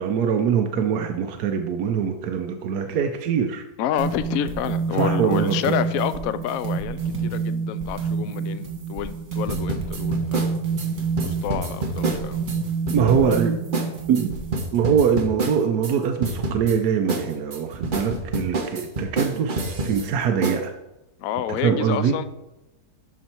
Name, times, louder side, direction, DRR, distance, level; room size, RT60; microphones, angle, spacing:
voice 1, 0.0-3.6 4.9-5.6 12.8-13.5 14.1-14.4 14.7-20.7 21.5-22.1, right 7 dB, 70° right, 4 dB, 1.2 m, -23 dB
voice 2, 3.8-10.5 11.2-12.4 21.2-22.2, left 10 dB, 70° left, 12 dB, 0.9 m, -28 dB
sound 1, 4.0-14.6, right 5 dB, 90° right, 2.5 m, -28 dB
sound 2, 9.5-12.6 12.9-13.4 13.7-13.9 14.1-15.9 16.2-16.8 17.1-20.1 20.4-20.6, right 2 dB, 40° right, 0.9 m, -27 dB
12.5 x 4.3 x 4.4 m, 0.92 s
omnidirectional pair, 1.8 m